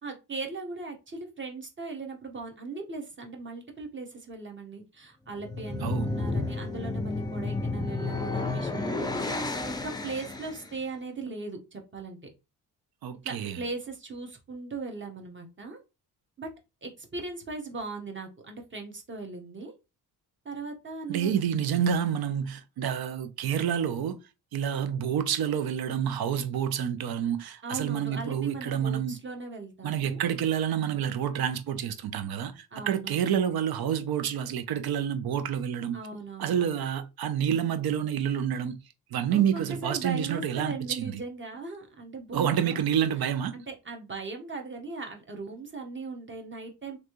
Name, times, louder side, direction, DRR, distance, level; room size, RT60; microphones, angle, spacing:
voice 1, 0.0-9.3 9.8-12.2 13.2-15.8 16.4-16.5 16.8-19.7 20.4-21.3 27.6-30.2 32.7-33.3 35.9-36.7 39.3-42.8 43.5-47.0, right 3 dB, 30° right, 1.1 m, -38 dB
sound 1, 5.3-10.7, left 3 dB, 10° left, 0.5 m, -32 dB
voice 2, 13.0-13.6 21.1-24.2 24.5-29.2 29.8-36.0 36.4-38.8 39.1-41.2 42.3-43.5, right 9 dB, 65° right, 0.7 m, -28 dB
3.1 x 2.7 x 3.0 m
cardioid pair, 80°, 39 cm